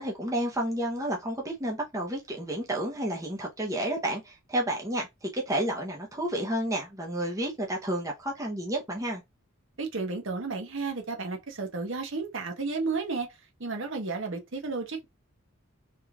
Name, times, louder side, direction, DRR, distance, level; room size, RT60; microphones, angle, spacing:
voice 1, 0.0-9.2, right 1 dB, 15° right, 0.7 m, -31 dB
voice 2, 9.8-13.3 13.6-15.0, right 3 dB, 60° right, 1.0 m, -32 dB
3.5 x 3.0 x 2.3 m
head